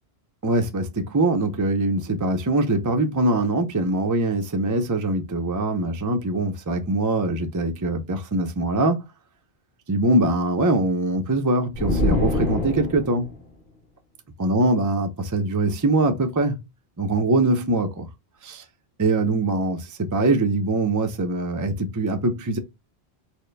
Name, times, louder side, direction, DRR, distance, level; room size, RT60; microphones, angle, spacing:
voice 1, 0.4-9.0 9.9-13.3 14.4-16.6 17.0-18.1 18.4-18.6 19.0-22.6, right 2 dB, 25° right, 0.4 m, -23 dB
sound 1, 11.7-13.4, left 2 dB, 55° left, 1.6 m, -24 dB
4.4 x 2.1 x 3.2 m
omnidirectional pair, 1.0 m